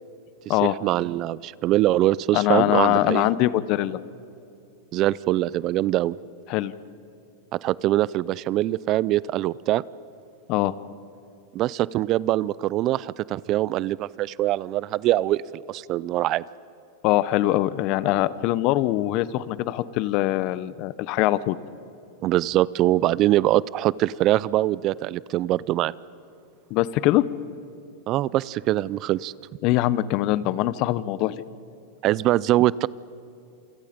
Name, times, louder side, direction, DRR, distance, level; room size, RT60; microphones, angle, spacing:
voice 1, 0.6-3.3 4.9-6.2 7.5-9.8 11.5-16.4 22.2-25.9 28.1-29.3 32.0-32.9, right 15 dB, 40° right, 22 dB, 0.5 m, -23 dB
voice 2, 2.3-4.0 6.5-6.7 10.5-10.7 17.0-21.6 26.7-27.2 29.6-31.4, left 15 dB, 50° left, 18 dB, 0.9 m, -22 dB
28.0 x 24.5 x 5.2 m, 2.7 s
hypercardioid pair, 120°, 0 cm